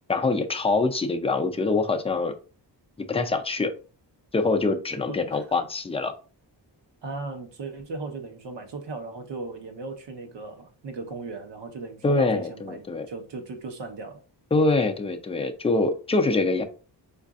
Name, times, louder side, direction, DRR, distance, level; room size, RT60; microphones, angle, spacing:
voice 1, 0.1-2.3 3.1-3.7 4.3-6.1 12.0-13.1 14.5-16.6, left 3 dB, 15° left, 0.4 m, -24 dB
voice 2, 5.1-5.5 7.0-14.2 14.6-14.8, right 3 dB, 70° right, 0.9 m, -37 dB
4.8 x 2.5 x 2.4 m
wide cardioid pair, 135°, 43 cm